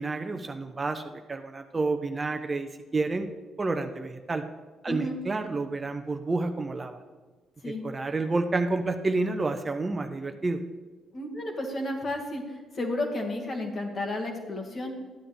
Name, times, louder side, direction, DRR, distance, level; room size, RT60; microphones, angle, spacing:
voice 1, 0.0-2.7 2.9-3.3 3.6-4.4 4.8-7.0 7.8-10.6, right 3 dB, 30° right, 7 dB, 0.8 m, -29 dB
voice 2, 4.9-5.2 7.6-7.8 11.1-14.9, left 1 dB, 45° left, 1 dB, 2.0 m, -32 dB
13.0 x 9.9 x 3.4 m, 1.3 s
hypercardioid pair, 45°, 0 cm